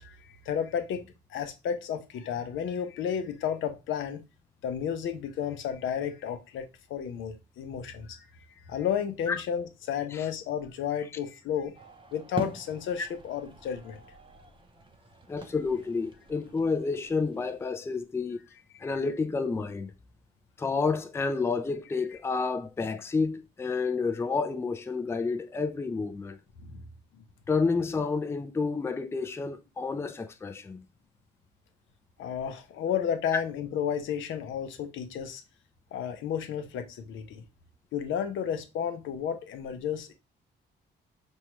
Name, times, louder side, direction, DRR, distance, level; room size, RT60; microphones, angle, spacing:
voice 1, 0.0-4.2 4.6-8.3 8.7-11.7 12.1-14.0 18.8-18.9 26.6-26.8 32.2-35.4 35.9-37.4 37.9-40.1, left 8 dB, 75° left, 0.7 m, -32 dB
sound 1, 11.7-17.7, right 3 dB, 25° right, 0.6 m, -44 dB
voice 2, 15.3-18.4 18.8-19.9 20.6-26.4 27.5-30.8, left 4 dB, 15° left, 0.3 m, -30 dB
5.3 x 2.3 x 3.0 m
cardioid pair, 90°, 20 cm